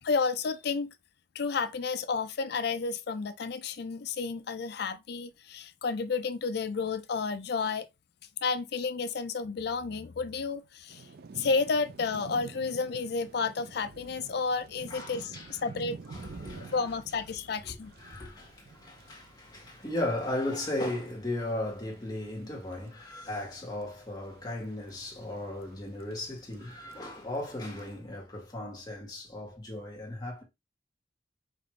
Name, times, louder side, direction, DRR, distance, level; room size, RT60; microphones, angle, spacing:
voice 1, 0.0-0.9 1.3-7.9 8.4-11.1 11.3-16.0 16.5-17.9, left 4 dB, 55° left, 0.4 m, -31 dB
Thunder / Rain, 10.9-27.9, right 4 dB, 50° right, 0.4 m, -50 dB
voice 2, 14.9-15.6 16.1-16.8 18.0-30.4, left 1 dB, 20° left, 1.4 m, -36 dB
5.3 x 2.5 x 3.1 m
head